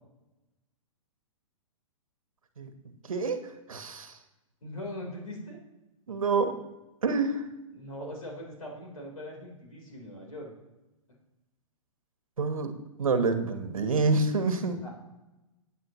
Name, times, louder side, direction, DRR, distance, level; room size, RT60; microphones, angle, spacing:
voice 1, 3.1-3.4 3.7-4.1 6.1-6.5 7.0-7.5 12.4-14.8, right 4 dB, 80° right, 8 dB, 1.2 m, -27 dB
voice 2, 4.6-5.6 7.7-10.5 14.8-14.9, left 1 dB, 80° left, 0 dB, 3.7 m, -41 dB
17.0 x 9.1 x 3.0 m, 1.0 s
figure-of-eight pair, 120°, 17 cm